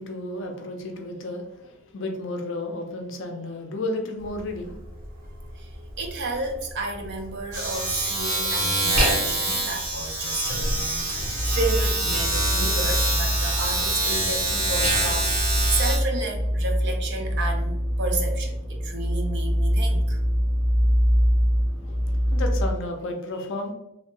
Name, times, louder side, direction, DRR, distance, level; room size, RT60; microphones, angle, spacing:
voice 1, 0.0-4.7 21.8-23.7, left 2 dB, 55° left, 3 dB, 0.5 m, -32 dB
Domestic sounds home sounds, 4.2-4.4 4.7-16.0, right 1 dB, 85° right, 1.3 m, -25 dB
voice 2, 5.3-20.2, right 2 dB, 50° right, 3 dB, 0.5 m, -32 dB
sound 1, 11.2-22.7, equal, ahead, 0.5 m, -24 dB
2.7 x 2.1 x 3.1 m, 0.86 s
head